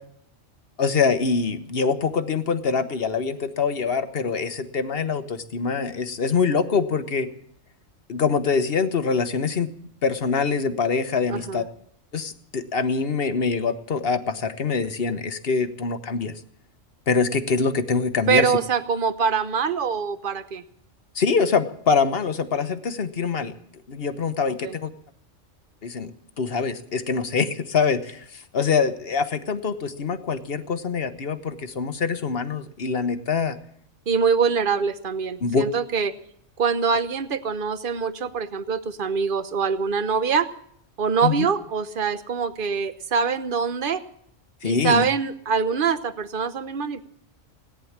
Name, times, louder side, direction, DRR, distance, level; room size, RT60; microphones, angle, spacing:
voice 1, 0.8-7.3 8.1-9.7 10.0-11.7 12.1-16.4 17.1-18.5 21.1-23.5 23.9-24.9 25.8-26.1 26.4-33.6 35.4-35.6 41.2-41.5 44.6-45.1, left 5 dB, 50° left, 10 dB, 1.3 m, -24 dB
voice 2, 11.3-11.7 18.3-20.6 24.6-24.8 34.1-36.1 36.6-40.5 41.0-44.0 44.6-47.1, right 6 dB, 45° right, 12 dB, 1.0 m, -24 dB
17.5 x 10.0 x 7.3 m, 0.66 s
omnidirectional pair, 1.3 m